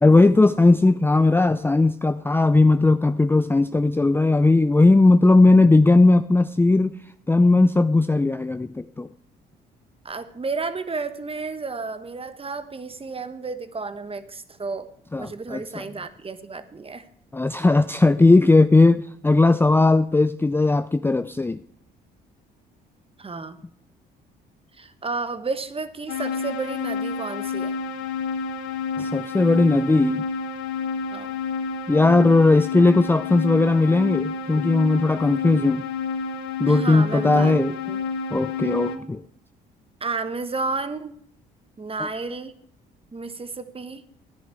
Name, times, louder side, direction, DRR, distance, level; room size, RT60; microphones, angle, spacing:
voice 1, 0.0-6.9 7.3-9.1 15.1-15.9 17.3-21.6 29.0-30.2 31.9-35.9 36.6-37.7 38.3-39.2 42.0-42.1, left 2 dB, 10° left, 11 dB, 0.5 m, -18 dB
voice 2, 10.0-14.9 15.2-17.1 23.2-23.6 24.8-27.8 31.1-31.3 36.7-37.5 37.9-38.0 40.0-41.1 41.8-42.5 43.1-44.0, right 4 dB, 25° right, 12 dB, 1.2 m, -32 dB
sound 1, 26.1-39.0, left 5 dB, 75° left, 1.0 m, -29 dB
13.5 x 10.0 x 4.6 m, 0.65 s
hypercardioid pair, 55°, 21 cm